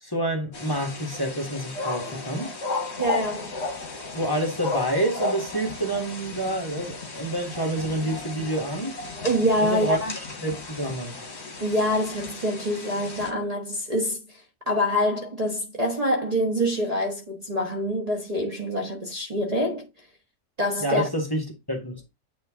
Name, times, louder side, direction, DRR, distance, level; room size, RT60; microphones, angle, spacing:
voice 1, 0.0-2.5 4.1-9.0 9.6-10.0 10.4-11.2 20.8-22.0, right 1 dB, 15° left, 1.6 m, -28 dB
sound 1, 0.5-13.3, left 3 dB, 55° left, 1.9 m, -34 dB
voice 2, 3.0-3.5 9.2-10.1 11.6-19.9 20.6-21.1, equal, 30° right, 1.3 m, -25 dB
9.2 x 3.1 x 3.6 m
omnidirectional pair, 1.3 m